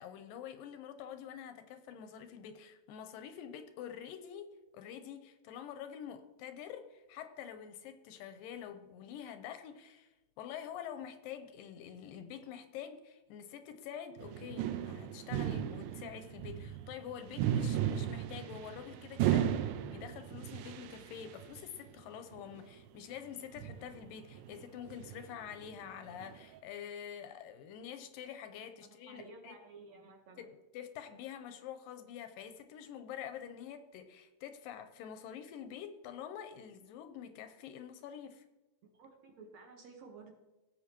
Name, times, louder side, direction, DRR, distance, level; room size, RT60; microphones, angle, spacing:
voice 1, 0.0-19.5 19.9-29.6 30.4-38.4, left 9 dB, 80° left, 9 dB, 2.3 m, -47 dB
sound 1, 14.2-22.0 22.3-22.6 23.6-26.6, right 10 dB, 80° right, 1.9 m, -36 dB
voice 2, 28.8-30.5 38.8-40.3, right 4 dB, 60° right, 2 dB, 2.0 m, -54 dB
17.0 x 7.8 x 3.0 m, 1.1 s
omnidirectional pair, 4.2 m